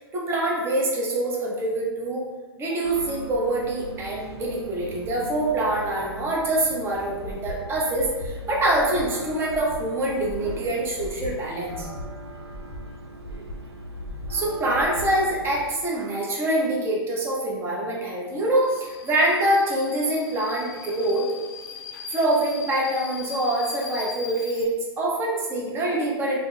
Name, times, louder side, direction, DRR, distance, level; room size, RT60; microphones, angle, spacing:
voice 1, 0.1-2.3 2.6-11.9 14.3-21.3 22.1-26.4, right 1 dB, 20° right, -3 dB, 0.8 m, -25 dB
sound 1, 2.8-15.7, right 1 dB, 85° right, 0.6 m, -40 dB
Breathing, 7.2-7.6 7.9-8.3 8.7-9.1 9.4-9.8 10.2-10.6 11.0-11.3 11.7-12.1 12.5-12.8 13.2-13.6 14.0-14.3 14.7-15.1, left 1 dB, 20° left, 1.4 m, -37 dB
Subway metro underground, 18.6-24.7, left 6 dB, 45° left, 0.6 m, -40 dB
5.0 x 2.8 x 2.2 m, 1.3 s
figure-of-eight pair, 110°, 13 cm